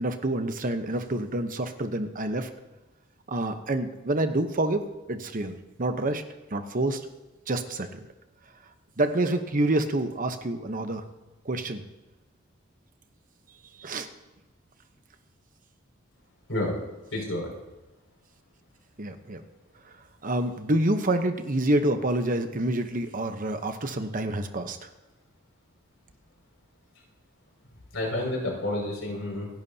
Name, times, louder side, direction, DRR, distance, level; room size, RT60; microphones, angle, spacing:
voice 1, 0.0-2.5 3.3-6.2 6.5-7.0 7.5-8.0 9.0-11.0 11.4-11.8 13.8-14.1 19.0-19.4 20.2-24.9, right 1 dB, 40° right, 7 dB, 1.0 m, -27 dB
voice 2, 17.1-17.5 27.9-29.5, left 1 dB, 75° left, -3 dB, 6.1 m, -29 dB
28.0 x 11.0 x 2.9 m, 1.1 s
head